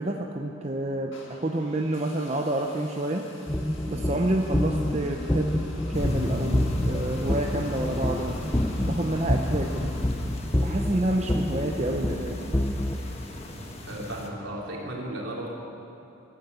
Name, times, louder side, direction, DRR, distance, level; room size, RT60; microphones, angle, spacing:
voice 1, 0.0-3.3 3.9-8.4 8.8-9.9 10.6-12.4, right 1 dB, 30° right, 2 dB, 0.7 m, -29 dB
sound 1, 1.1-11.3, left 1 dB, 70° left, 2.1 m, -47 dB
sound 2, 3.5-13.0, left 1 dB, 10° left, 0.6 m, -28 dB
sound 3, 5.9-14.3, left 1 dB, 30° left, 1.4 m, -36 dB
voice 2, 13.9-15.5, right 1 dB, 70° right, -3 dB, 3.3 m, -35 dB
16.0 x 11.0 x 8.0 m, 3.0 s
head